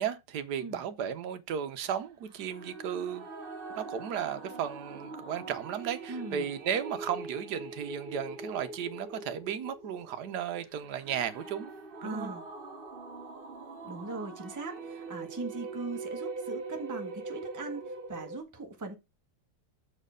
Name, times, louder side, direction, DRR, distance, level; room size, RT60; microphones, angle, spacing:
voice 1, 0.0-3.2 3.8-11.7 12.0-12.3, right 8 dB, 65° right, 1.3 m, -35 dB
sound 1, 2.4-18.4, right 3 dB, 40° right, 0.8 m, -43 dB
voice 2, 6.1-6.5 12.0-12.4 13.8-18.9, right 3 dB, 10° right, 1.0 m, -40 dB
7.2 x 4.4 x 5.0 m
omnidirectional pair, 2.1 m